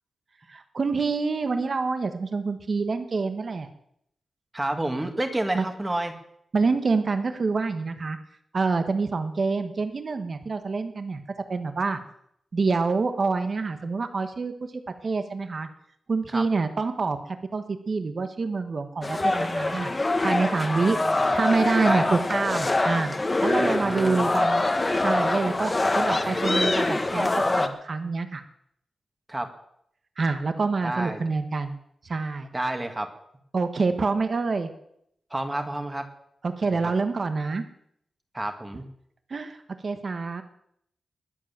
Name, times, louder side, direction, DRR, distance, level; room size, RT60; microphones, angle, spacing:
voice 1, 0.5-3.7 5.5-5.6 6.5-8.2 8.5-11.2 11.5-12.0 12.5-14.5 15.0-15.7 16.1-17.2 17.5-19.9 20.2-21.0 21.3-23.1 23.4-24.6 25.0-28.4 30.2-31.8 32.0-32.5 33.5-34.7 36.4-37.6 39.3-39.6 39.8-40.4, right 4 dB, 45° right, 8 dB, 1.3 m, -26 dB
voice 2, 4.5-6.2 16.3-16.4 20.7-21.3 21.8-22.2 23.6-24.2 29.3-29.5 30.8-31.2 32.5-33.1 35.3-36.1 36.6-36.9 38.3-38.8, right 1 dB, 15° right, 6 dB, 1.9 m, -30 dB
sound 1, 19.0-27.7, left 2 dB, 20° left, 1.2 m, -24 dB
20.5 x 7.8 x 7.4 m, 0.73 s
wide cardioid pair, 130°, 0 cm